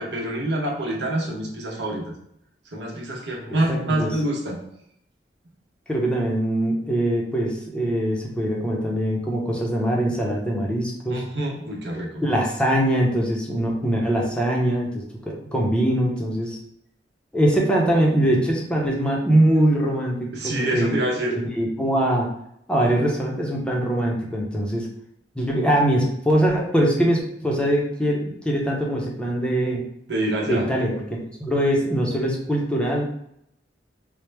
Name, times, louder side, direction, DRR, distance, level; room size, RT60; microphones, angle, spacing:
voice 1, 0.0-2.1 2.7-4.6 11.1-12.2 20.3-21.4 30.1-30.7, right 1 dB, 75° right, 0 dB, 0.8 m, -26 dB
voice 2, 3.5-4.1 5.9-11.2 12.2-16.6 17.3-20.9 21.3-22.3 22.7-24.9 25.4-29.8 30.5-30.9 31.4-33.0, right 1 dB, 5° left, -2 dB, 0.6 m, -22 dB
4.4 x 2.0 x 3.3 m, 0.73 s
head